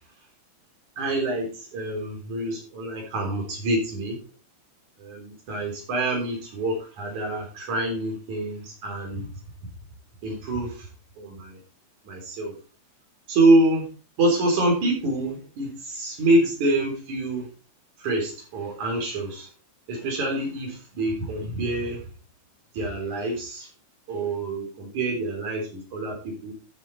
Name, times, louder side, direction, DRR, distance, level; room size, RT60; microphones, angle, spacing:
voice 1, 1.0-1.5 1.7-4.2 5.0-9.3 10.2-10.9 11.2-11.6 12.1-12.5 13.3-13.9 14.2-17.5 18.0-19.5 19.9-22.0 22.8-23.7 24.1-26.5, right 2 dB, 80° right, 1 dB, 5.2 m, -26 dB
12.0 x 7.4 x 4.2 m, 0.36 s
omnidirectional pair, 3.3 m